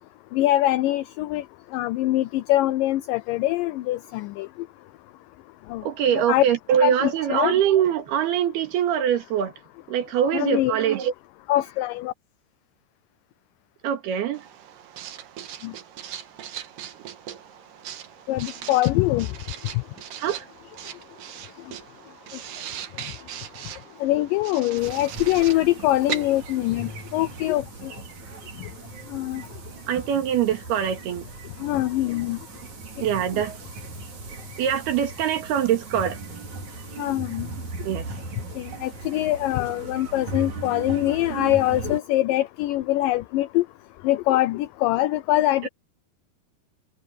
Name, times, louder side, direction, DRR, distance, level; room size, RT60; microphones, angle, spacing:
voice 1, 0.3-1.4 1.7-4.5 5.7-5.8 6.1-6.4 6.8-7.5 10.3-10.7 11.5-12.1 15.6-15.7 18.3-19.3 24.0-27.9 29.1-29.4 31.6-32.4 33.3-33.4 37.0-37.5 38.6-43.6 44.0-45.7, left 15 dB, 85° left, 1.9 m, -23 dB
voice 2, 5.8-9.5 9.9-11.1 13.8-14.4 20.2-20.5 29.9-31.3 33.0-33.6 34.6-36.2 37.8-38.1 45.6-45.7, right 9 dB, 85° right, 3.9 m, -23 dB
Writing, 14.3-27.6, right 10 dB, 65° right, 2.9 m, -39 dB
sound 1, 24.8-42.0, right 3 dB, 50° right, 4.1 m, -38 dB
omnidirectional pair, 4.5 m